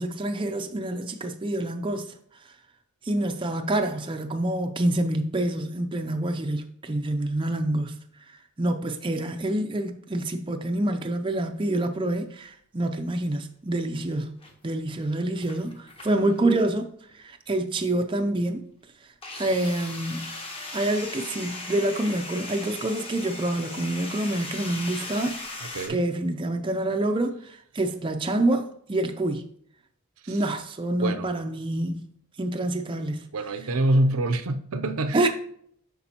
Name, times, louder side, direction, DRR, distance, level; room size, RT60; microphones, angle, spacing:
voice 1, 0.0-2.2 2.4-2.5 3.0-8.0 8.3-18.7 19.3-20.4 20.7-25.4 25.9-29.5 30.3-32.0 32.4-33.3 35.1-35.3, right 1 dB, 25° right, 0.4 m, -27 dB
sound 1, 14.4-15.1 15.4-16.4 17.1-17.2 19.2-25.9, left 2 dB, 25° left, 1.1 m, -38 dB
voice 2, 25.6-26.0 30.2-30.5 31.0-31.3 33.3-35.2, right 1 dB, 70° right, 0.6 m, -25 dB
8.3 x 5.9 x 2.9 m
head